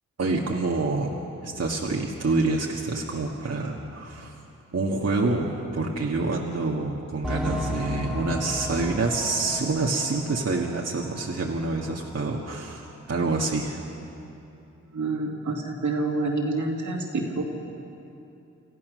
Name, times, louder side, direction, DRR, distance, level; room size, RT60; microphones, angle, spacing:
voice 1, 0.2-1.2 1.4-4.3 4.7-13.8, right 3 dB, 55° right, -2 dB, 1.8 m, -27 dB
sound 1, 7.2-11.5 11.8-11.9 12.5-12.6, left 1 dB, ahead, 1.6 m, -34 dB
voice 2, 14.9-17.4, right 3 dB, 75° right, 0 dB, 2.5 m, -27 dB
28.0 x 14.5 x 6.4 m, 2.8 s
wide cardioid pair, 75°, 30 cm